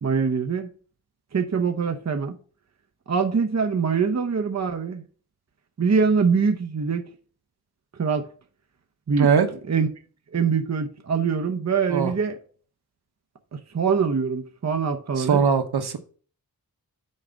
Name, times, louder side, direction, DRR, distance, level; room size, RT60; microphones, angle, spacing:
voice 1, 0.0-0.7 1.3-2.4 3.1-5.0 5.8-7.1 8.0-8.3 9.1-9.3 9.7-9.9 10.3-12.4 13.5-15.4, right 5 dB, 45° right, 0.9 m, -23 dB
voice 2, 15.2-16.0, right 6 dB, 80° right, 1.1 m, -20 dB
6.5 x 4.8 x 6.3 m
wide cardioid pair, 85°, 38 cm